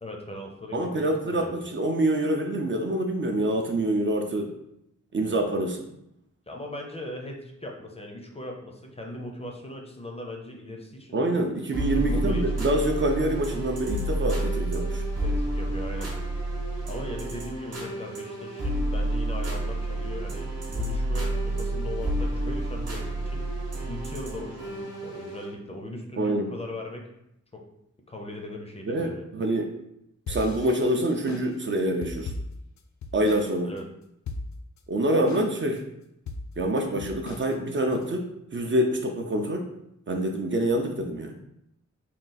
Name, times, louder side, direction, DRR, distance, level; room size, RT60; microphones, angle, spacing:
voice 1, 0.0-1.5 6.5-11.2 11.9-12.7 15.2-16.1 16.9-23.5 23.9-27.1 27.5-27.7 28.1-29.3 33.6-33.8, left 1 dB, 20° left, 1 dB, 0.5 m, -39 dB
voice 2, 0.7-4.5 5.1-5.8 11.1-15.0 26.2-26.5 28.9-29.8 30.3-32.3 33.1-33.7 34.9-35.8 36.6-39.7 40.1-41.3, right 1 dB, 40° right, 3 dB, 0.5 m, -26 dB
sound 1, 11.7-25.6, right 1 dB, 60° right, 1.0 m, -30 dB
sound 2, 30.3-33.5 33.8-33.9 34.3-34.8 35.3-35.8 36.3-38.0, left 3 dB, 75° left, 0.4 m, -37 dB
3.7 x 2.3 x 3.9 m, 0.79 s
wide cardioid pair, 140°, 29 cm